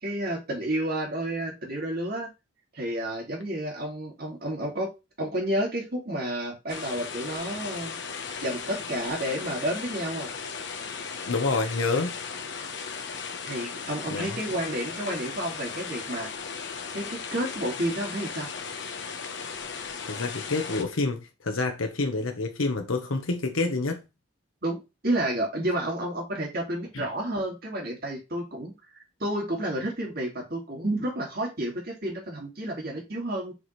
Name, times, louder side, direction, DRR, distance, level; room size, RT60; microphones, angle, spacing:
voice 1, 0.0-2.3 2.7-4.9 5.2-8.0 8.4-10.3 13.4-16.3 16.9-18.5 24.6-33.5, right 1 dB, 50° right, 2.4 m, -30 dB
sound 1, 6.7-20.8, left 5 dB, 60° left, 1.0 m, -36 dB
voice 2, 11.3-12.1 14.1-14.4 20.1-24.0 26.9-27.0, left 3 dB, 85° left, 1.0 m, -28 dB
7.2 x 4.2 x 3.2 m
head